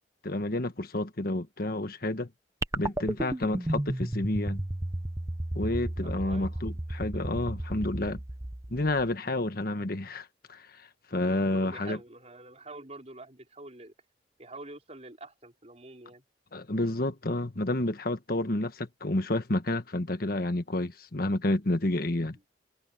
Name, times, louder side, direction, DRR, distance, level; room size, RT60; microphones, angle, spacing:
voice 1, 0.2-2.3 2.7-4.6 5.5-8.2 8.7-12.0 16.5-22.4, left 1 dB, 55° left, 1.5 m, -30 dB
sound 1, 2.6-9.1, right 1 dB, 15° right, 0.8 m, -33 dB
voice 2, 6.0-6.5 11.3-13.9 14.4-16.2 22.1-22.3, right 2 dB, 35° right, 4.6 m, -46 dB
head